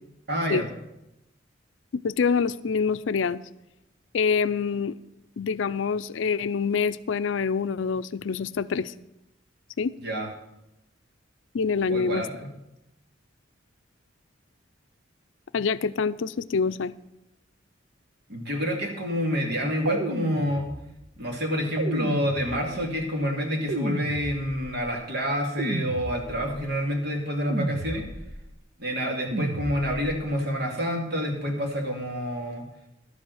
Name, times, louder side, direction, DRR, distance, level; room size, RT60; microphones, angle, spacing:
voice 1, 0.3-0.7 10.0-10.3 11.9-12.5 18.3-20.7 21.2-28.1 28.8-32.6, equal, 60° right, 1 dB, 2.4 m, -28 dB
voice 2, 1.9-3.4 4.1-5.0 5.4-8.9 9.8-9.9 11.5-12.3 15.5-16.9, left 5 dB, 75° left, 14 dB, 0.4 m, -26 dB
sound 1, 19.8-21.1 21.8-22.9 23.7-24.8 25.6-26.6 27.5-28.4 29.3-30.2, right 2 dB, 85° right, 1.0 m, -33 dB
11.5 x 7.9 x 6.4 m, 0.88 s
head